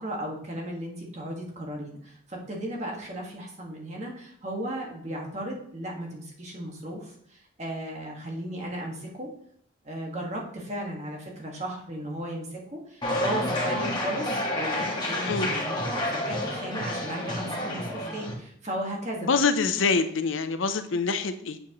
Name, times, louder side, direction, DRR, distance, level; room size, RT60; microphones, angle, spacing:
voice 1, 0.0-9.3 9.8-14.3 14.6-19.4, right 1 dB, 35° right, -1 dB, 1.7 m, -35 dB
sound 1, 13.0-18.3, left 1 dB, 20° left, 1.4 m, -29 dB
voice 2, 19.2-21.6, left 4 dB, 80° left, 10 dB, 0.6 m, -25 dB
7.4 x 7.1 x 3.0 m, 0.65 s
head